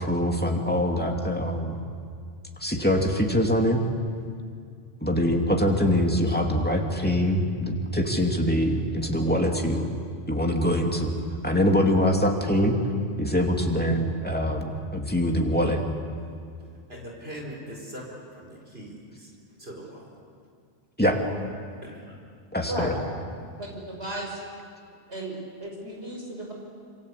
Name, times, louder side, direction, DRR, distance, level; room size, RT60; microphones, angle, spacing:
voice 1, 0.0-1.8 2.6-3.8 5.0-9.9 10.3-11.1 11.4-12.8 13.2-15.8 21.0-21.2 22.5-22.9, equal, 10° left, 1 dB, 2.7 m, -24 dB
voice 2, 16.9-19.3 19.6-20.2 21.8-22.2, equal, 65° right, -1 dB, 4.7 m, -41 dB
voice 3, 22.7-23.2 23.5-24.4 25.1-26.5, right 1 dB, 90° right, 0 dB, 6.3 m, -34 dB
26.5 x 25.5 x 8.4 m, 2.2 s
omnidirectional pair, 1.1 m